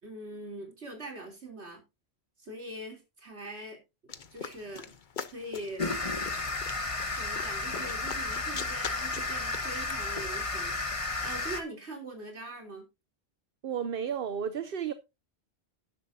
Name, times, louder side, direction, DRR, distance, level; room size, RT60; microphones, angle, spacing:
voice 1, 0.0-1.8 2.4-3.8 4.3-4.9 5.3-5.9 7.2-12.9, right 1 dB, 85° right, 3.7 m, -42 dB
sound 1, 4.1-10.9, left 6 dB, 50° left, 1.0 m, -44 dB
sound 2, 5.8-11.6, left 3 dB, 30° left, 1.3 m, -33 dB
voice 2, 13.6-14.9, right 8 dB, 60° right, 0.9 m, -32 dB
12.5 x 10.5 x 2.7 m
omnidirectional pair, 1.1 m